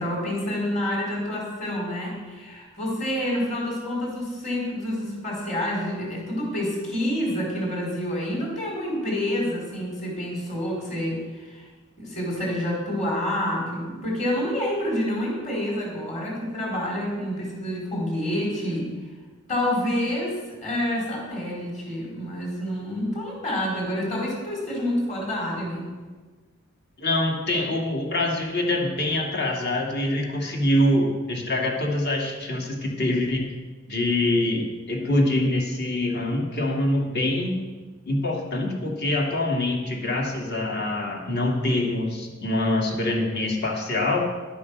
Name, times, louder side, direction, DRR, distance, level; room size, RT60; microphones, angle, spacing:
voice 1, 0.0-11.7 12.0-18.9 19.5-25.9, left 1 dB, 35° left, -3 dB, 4.5 m, -28 dB
voice 2, 27.0-33.5 33.9-37.6 38.0-44.2, left 1 dB, 55° left, 0 dB, 2.3 m, -24 dB
11.5 x 8.4 x 6.6 m, 1.3 s
head